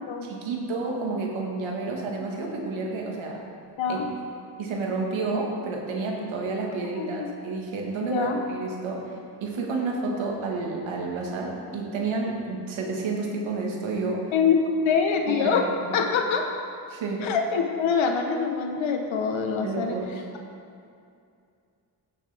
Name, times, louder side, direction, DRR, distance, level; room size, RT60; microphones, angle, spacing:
voice 1, 0.2-3.4 3.9-4.0 4.6-14.3 15.3-16.0 16.9-17.3 19.6-20.2, right 3 dB, 80° right, 0 dB, 1.8 m, -30 dB
voice 2, 3.8-4.1 7.0-7.3 8.0-8.4 14.3-14.6 14.8-15.7 15.9-16.4 17.2-19.9, left 6 dB, 75° left, 4 dB, 1.2 m, -24 dB
16.0 x 6.7 x 3.5 m, 2.4 s
supercardioid pair, 45°, 47 cm